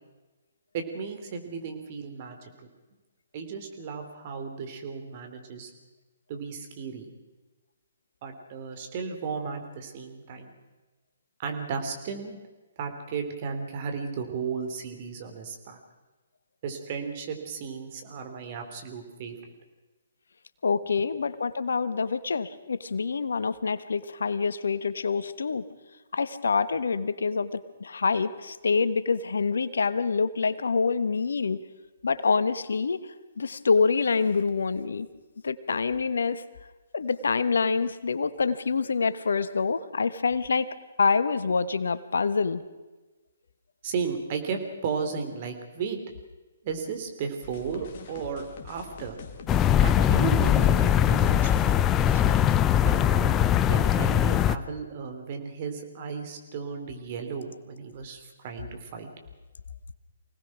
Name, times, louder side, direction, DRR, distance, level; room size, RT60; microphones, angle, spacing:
voice 1, 0.7-2.5 3.3-5.7 6.3-7.1 8.2-10.6 11.4-12.4 12.8-15.8 16.6-19.5 43.8-46.0 46.6-49.2 49.8-52.4 52.8-53.4 53.7-59.1, right 5 dB, 40° right, 5 dB, 3.6 m, -34 dB
voice 2, 20.6-25.6 26.1-31.6 32.0-33.0 33.4-35.1 35.4-36.4 36.9-40.7 41.0-42.6, left 5 dB, 70° left, 14 dB, 1.1 m, -26 dB
sound 1, 47.4-52.6, left 4 dB, 45° left, 2.1 m, -44 dB
sound 2, 49.5-54.6, left 10 dB, 20° left, 0.6 m, -21 dB
25.0 x 18.5 x 6.2 m, 1.2 s
figure-of-eight pair, 135°, 0 cm